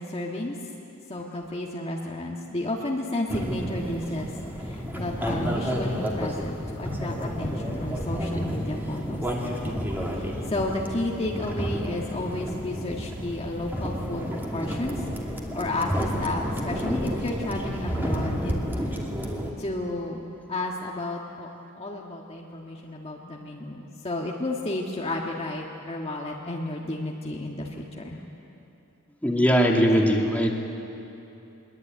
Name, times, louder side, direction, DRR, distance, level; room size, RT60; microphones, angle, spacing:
voice 1, 0.1-0.6 1.1-4.3 4.6-9.8 10.2-15.0 15.5-18.5 18.9-19.0 19.6-21.5 21.7-28.2, left 1 dB, 25° left, -2 dB, 1.6 m, -32 dB
sound 1, 3.3-19.5, equal, 10° right, 2.7 m, -31 dB
voice 2, 29.2-30.5, equal, 5° left, 0 dB, 2.3 m, -20 dB
23.0 x 22.5 x 9.3 m, 2.9 s
head